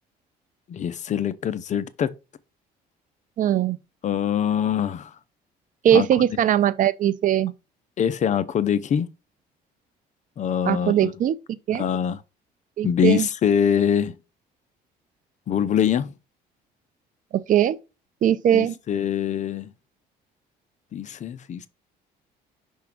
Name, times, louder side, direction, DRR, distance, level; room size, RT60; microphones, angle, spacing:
voice 1, 0.7-2.1 4.0-5.1 5.9-6.2 8.0-9.1 10.4-11.1 11.7-12.2 12.8-14.2 15.5-16.1 18.5-19.7 20.9-21.7, left 8 dB, 45° left, 0.6 m, -24 dB
voice 2, 3.4-3.8 5.8-7.5 10.7-11.4 11.7-11.8 12.8-13.3 17.3-17.8 18.2-18.7, right 10 dB, 50° right, 0.6 m, -20 dB
5.9 x 3.7 x 5.8 m
cardioid pair, 110°, 17 cm